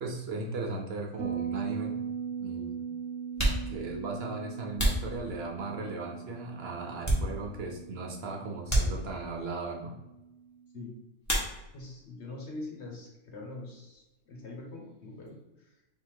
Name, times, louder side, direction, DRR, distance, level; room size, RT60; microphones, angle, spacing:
voice 1, 0.0-2.0 2.4-2.8 3.7-10.0, right 3 dB, 60° right, 1 dB, 0.9 m, -37 dB
Bass guitar, 1.2-10.5, right 7 dB, 90° right, 0.9 m, -40 dB
sound 1, 1.5-1.6 2.5-2.6 3.2-5.9 6.4-7.8 8.0-8.2 8.6-9.5 11.2-12.0 12.3-13.0 13.2-15.4, right 1 dB, 15° left, 1.1 m, -32 dB
voice 2, 11.7-15.8, left 2 dB, 65° left, -1 dB, 1.3 m, -43 dB
3.5 x 2.8 x 4.5 m, 0.97 s
omnidirectional pair, 1.2 m